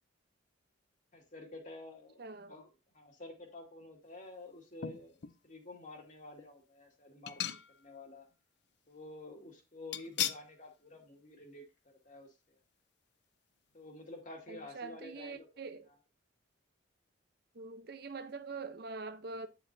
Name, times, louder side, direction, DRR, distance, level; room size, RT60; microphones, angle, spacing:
voice 1, 1.1-8.3 8.9-11.6 12.0-12.6 13.7-15.5, left 2 dB, 40° left, 1.9 m, -50 dB
voice 2, 2.2-2.5 14.5-15.9 17.5-19.5, right 4 dB, 50° right, 0.7 m, -44 dB
sound 1, 4.8-5.4 6.0-6.1 7.3-8.0 8.3-8.4 9.9-10.5 10.9-11.1 11.4-11.5, left 11 dB, 55° left, 0.5 m, -38 dB
9.1 x 6.8 x 2.7 m
head